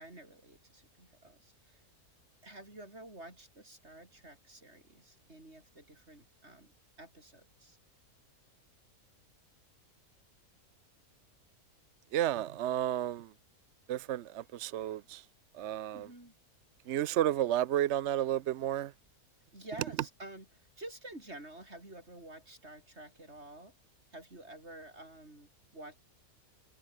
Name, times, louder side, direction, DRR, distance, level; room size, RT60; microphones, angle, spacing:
voice 1, 0.0-1.8 2.4-6.7 7.0-7.8 15.9-16.3 19.5-23.7 24.1-26.0, right 1 dB, 45° right, 7.2 m, -50 dB
voice 2, 12.1-13.3 13.9-15.2 15.5-16.1 16.9-18.9, right 12 dB, 65° right, 0.7 m, -32 dB
omnidirectional pair, 1.6 m